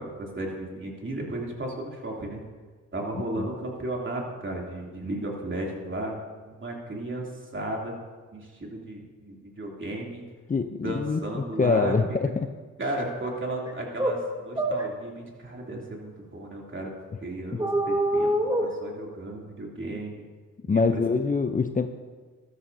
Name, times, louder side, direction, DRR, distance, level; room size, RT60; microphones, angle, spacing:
voice 1, 0.0-2.4 2.9-6.1 6.4-8.0 8.3-10.2 10.8-12.0 12.8-14.2 14.4-16.9 17.2-18.3 18.6-20.2 20.7-21.2, right 1 dB, 35° right, -1 dB, 3.0 m, -34 dB
voice 2, 10.5-12.3 17.5-17.6 20.7-21.9, left 4 dB, 25° left, 8 dB, 0.6 m, -25 dB
sound 1, 13.7-13.8 14.0-14.2 14.6-14.9 17.6-18.7, right 1 dB, 10° right, 1.8 m, -25 dB
13.5 x 12.5 x 2.8 m, 1.4 s
supercardioid pair, 45°, 34 cm